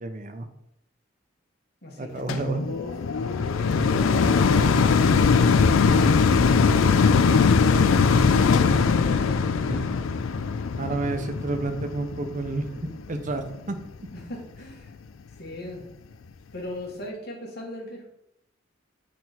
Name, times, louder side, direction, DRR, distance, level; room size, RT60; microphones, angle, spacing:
voice 1, 0.0-0.5 2.0-2.6 9.7-9.9 10.8-13.8, right 2 dB, 40° right, 8 dB, 0.6 m, -30 dB
voice 2, 1.8-5.4 6.4-7.6 8.8-9.6 14.1-14.9 15.4-15.8 16.5-18.1, left 1 dB, 50° left, 0 dB, 1.5 m, -39 dB
sound 1, 2.3-13.6 14.2-14.3, left 5 dB, 85° left, 0.4 m, -21 dB
6.2 x 4.4 x 4.1 m, 0.78 s
head